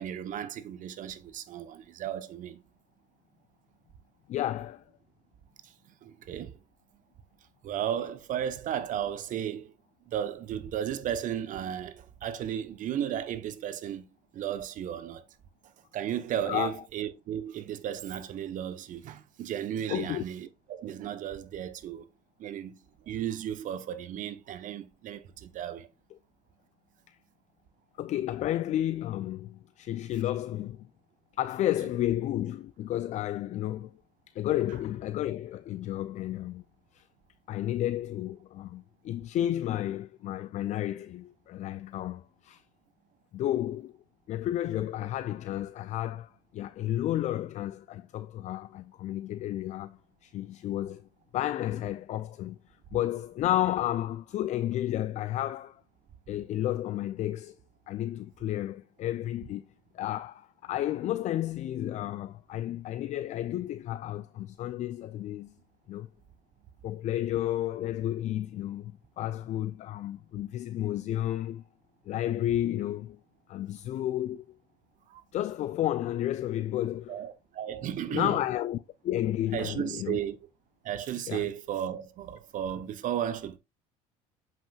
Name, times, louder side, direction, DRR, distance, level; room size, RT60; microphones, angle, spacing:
voice 1, 0.0-2.6 5.6-6.6 7.6-9.7 10.1-15.2 15.9-22.1 22.4-22.8 23.1-25.9 75.1-75.2 77.1-78.4 79.5-80.4 80.8-83.6, right 10 dB, 55° right, 0.9 m, -34 dB
voice 2, 4.3-4.8 16.5-16.7 19.9-20.2 27.1-27.2 28.0-30.9 31.4-33.9 34.3-36.6 36.9-37.1 37.5-42.6 43.3-43.9 44.3-51.1 51.3-52.6 52.9-55.8 56.3-57.6 57.9-59.6 59.9-65.5 65.9-66.1 66.8-71.6 72.1-73.2 73.5-74.6 75.3-77.2 78.1-80.2 81.3-81.5, left 13 dB, 45° left, 0.4 m, -32 dB
7.6 x 5.9 x 2.4 m
hypercardioid pair, 75°, 16 cm